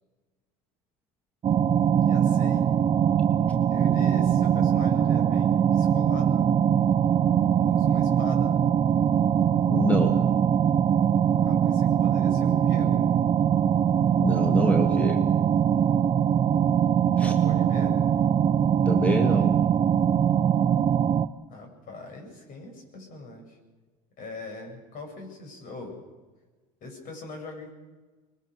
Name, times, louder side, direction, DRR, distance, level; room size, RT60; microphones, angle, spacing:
sound 1, 1.4-21.3, right 9 dB, 30° right, 0.8 m, -22 dB
voice 1, 2.0-2.7 3.7-6.5 7.7-8.6 11.4-13.1 17.2-18.0 21.5-23.6 24.2-26.0 26.8-27.7, left 2 dB, 50° left, 3 dB, 7.7 m, -41 dB
voice 2, 9.7-10.1 14.2-15.2 17.2-17.3 18.9-19.5, left 1 dB, 10° left, 5 dB, 1.8 m, -26 dB
24.5 x 21.5 x 6.5 m, 1.3 s
supercardioid pair, 105°, 18 cm